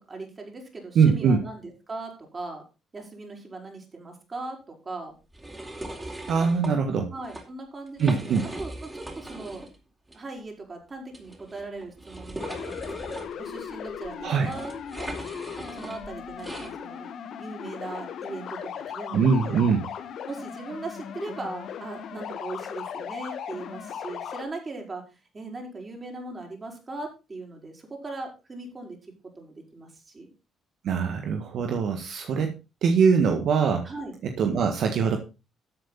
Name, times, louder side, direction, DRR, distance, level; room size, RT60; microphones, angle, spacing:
voice 1, 0.1-2.6 2.9-5.1 7.1-9.7 10.1-15.1 15.8-17.1 17.4-19.6 20.3-29.0 29.4-30.3 33.8-34.1, right 2 dB, 35° right, 1 dB, 5.7 m, -39 dB
voice 2, 0.9-1.4 6.3-7.1 8.0-8.4 14.2-14.5 19.1-19.8 30.8-32.5 32.8-33.9 34.4-35.2, right 6 dB, 70° right, 6 dB, 1.6 m, -22 dB
sound 1, 5.3-6.7 7.2-7.4 7.9-9.8 10.1-10.2 11.1-16.7, right 1 dB, 20° right, 4.3 m, -39 dB
sound 2, 12.4-24.4, left 8 dB, 70° left, 1.6 m, -38 dB
13.0 x 8.1 x 4.2 m, 0.29 s
supercardioid pair, 70°, 0 cm